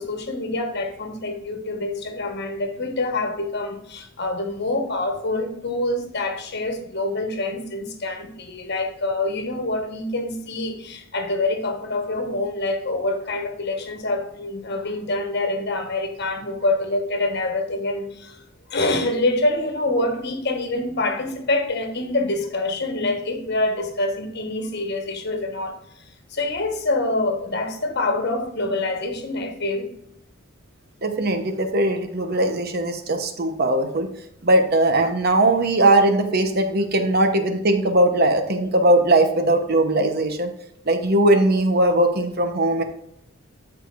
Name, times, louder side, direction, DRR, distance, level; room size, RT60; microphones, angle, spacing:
voice 1, 0.0-18.4 18.7-29.9, left 2 dB, 55° left, 1.3 m, -26 dB
voice 2, 31.0-34.1 34.4-40.5 40.9-42.8, right 1 dB, 50° right, 1.0 m, -19 dB
13.5 x 4.9 x 2.6 m
head